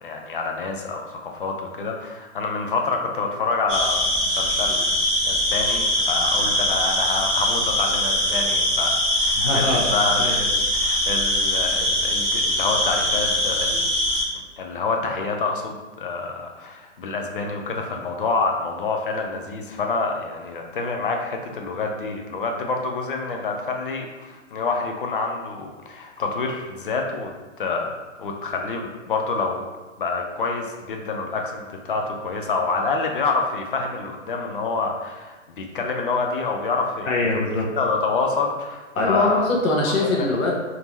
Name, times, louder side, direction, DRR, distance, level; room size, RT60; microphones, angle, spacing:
voice 1, 0.0-4.9 5.2-9.6 9.9-13.9 14.6-27.3 27.6-29.6 30.0-37.1 37.8-39.5 40.0-40.3, left 4 dB, 45° left, 2 dB, 0.5 m, -27 dB
sound 1, 3.7-14.2, left 1 dB, 5° right, 0.6 m, -22 dB
voice 2, 9.4-9.9 10.2-10.3 37.1-37.7 38.9-40.6, left 2 dB, 85° left, -3 dB, 0.9 m, -22 dB
3.6 x 2.7 x 3.0 m, 1.2 s
hypercardioid pair, 165°, 39 cm